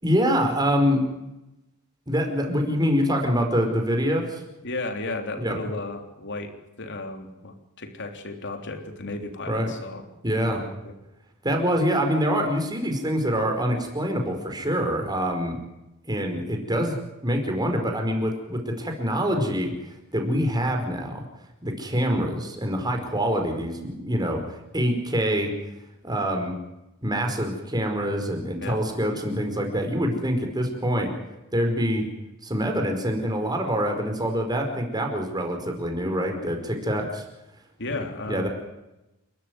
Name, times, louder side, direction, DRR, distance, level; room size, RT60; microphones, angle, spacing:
voice 1, 0.0-1.1 2.1-4.4 5.4-5.6 9.5-9.7 10.2-10.6 11.4-15.6 16.1-17.0 17.2-19.7 20.1-21.2 21.6-24.4 24.7-25.5 26.0-26.6 27.0-31.1 31.5-32.1 32.4-37.2 38.3-38.5, equal, 20° right, 3 dB, 5.0 m, -25 dB
voice 2, 4.6-6.5 6.8-10.0 10.4-10.9 28.6-28.8 37.8-38.5, left 2 dB, 55° left, 5 dB, 3.5 m, -34 dB
29.5 x 13.5 x 9.6 m, 0.96 s
head